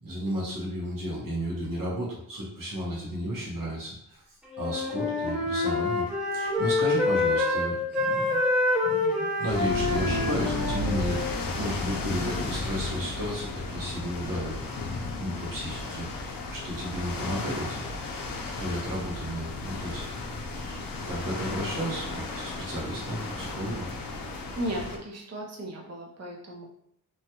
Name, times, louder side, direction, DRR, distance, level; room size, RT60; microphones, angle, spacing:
voice 1, 0.0-4.2 4.6-6.0 6.3-8.4 8.8-14.8 15.2-17.8 18.3-20.2 20.5-23.9, equal, 65° right, -4 dB, 1.2 m, -33 dB
Wind instrument woodwind instrument, 4.5-11.3, left 2 dB, 5° right, 0.8 m, -26 dB
sound 1, 9.5-25.0, left 2 dB, 70° left, 0.6 m, -34 dB
voice 2, 24.2-26.7, right 1 dB, 45° right, -1 dB, 0.7 m, -36 dB
3.1 x 2.3 x 2.9 m, 0.73 s
wide cardioid pair, 110°, 35 cm